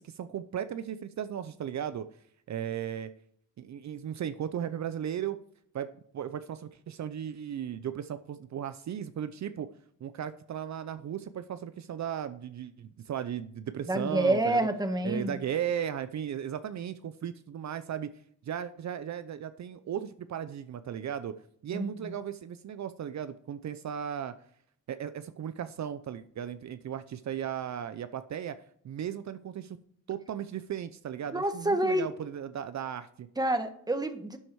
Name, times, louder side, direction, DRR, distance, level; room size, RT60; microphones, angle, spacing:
voice 1, 0.0-2.1 2.5-3.1 3.6-5.4 5.7-9.7 10.0-14.7 15.0-18.1 18.4-21.4 21.6-24.3 24.9-28.6 28.8-29.8 30.1-33.3, right 9 dB, 60° right, 12 dB, 0.7 m, -36 dB
voice 2, 13.9-15.4 21.7-22.1 31.3-32.1 33.4-34.4, right 1 dB, 10° right, 8 dB, 1.3 m, -28 dB
12.0 x 7.8 x 4.7 m, 0.65 s
cardioid pair, 115°, 31 cm